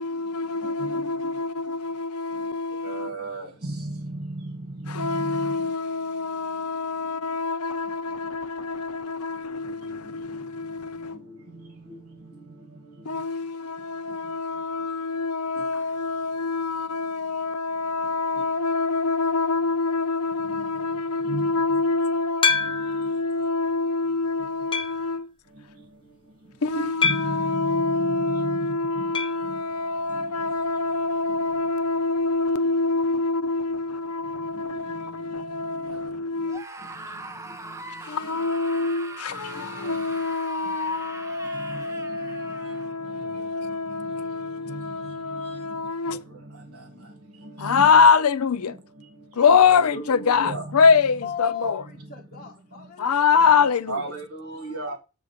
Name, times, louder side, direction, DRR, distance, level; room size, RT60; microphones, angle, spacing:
voice 1, 0.0-3.1 4.9-11.2 13.1-25.3 26.6-36.7 38.0-46.2 47.6-48.7 49.4-51.8 53.0-54.0, left 4 dB, 85° left, 0.6 m, -25 dB
voice 2, 0.6-1.0 2.8-4.6 4.8-5.6 11.9-12.0 21.3-21.5 26.7-28.6 31.3-31.4 39.8-40.0 41.6-41.8 44.7-45.4 46.1-46.2 47.6-47.9 49.4-50.8 53.6-55.0, right 2 dB, 80° right, 1.8 m, -34 dB
sound 1, 22.4-23.1 23.7-23.8 24.7-25.1 27.0-27.5 29.1-29.4 29.7-29.8 30.1-30.2 32.2-32.3, left 5 dB, 25° left, 0.7 m, -25 dB
Screaming, 36.5-43.0, right 2 dB, 15° right, 0.7 m, -41 dB
voice 3, 51.2-53.5 54.4-55.0, left 8 dB, 45° left, 1.3 m, -37 dB
7.6 x 3.9 x 5.8 m
head